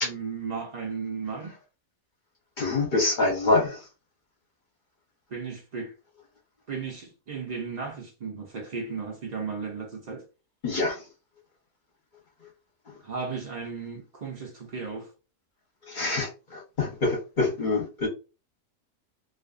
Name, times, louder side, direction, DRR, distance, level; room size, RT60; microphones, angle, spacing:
voice 1, 0.0-1.6 5.3-5.9 6.7-10.3 13.0-15.1, right 5 dB, 60° right, 0.4 m, -35 dB
voice 2, 2.6-3.8 10.6-11.0 15.9-18.1, left 3 dB, 45° left, 0.7 m, -26 dB
2.4 x 2.4 x 2.3 m
omnidirectional pair, 1.4 m